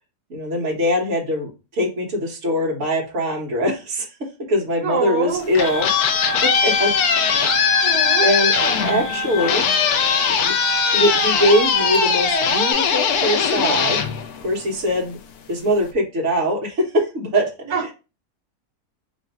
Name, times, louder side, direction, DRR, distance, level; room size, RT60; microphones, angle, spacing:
voice 1, 0.3-4.1 4.5-6.9 8.2-8.5 8.8-9.7 10.4-10.5 10.9-14.0 14.4-15.2 15.5-17.5, equal, 50° right, -1 dB, 1.4 m, -22 dB
voice 2, 4.8-5.4 7.8-8.3 17.7-17.9, right 5 dB, 75° right, 0 dB, 1.3 m, -24 dB
sound 1, 5.3-15.0, left 7 dB, 75° left, 1.1 m, -20 dB
sound 2, 5.6-12.7, equal, 30° right, 1.8 m, -28 dB
3.3 x 2.6 x 4.5 m, 0.30 s
omnidirectional pair, 1.7 m